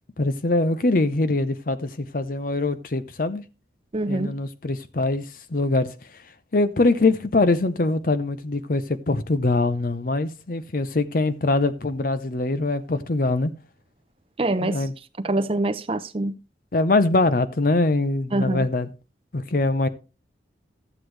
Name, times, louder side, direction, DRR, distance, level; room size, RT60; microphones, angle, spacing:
voice 1, 0.2-3.4 4.1-5.9 6.5-13.5 14.6-14.9 16.7-18.9 19.3-19.9, left 2 dB, 50° left, 0.6 m, -23 dB
voice 2, 3.9-4.4 14.4-14.9 15.2-16.4 18.3-18.7, right 2 dB, 30° right, 0.6 m, -25 dB
13.5 x 7.9 x 3.2 m
head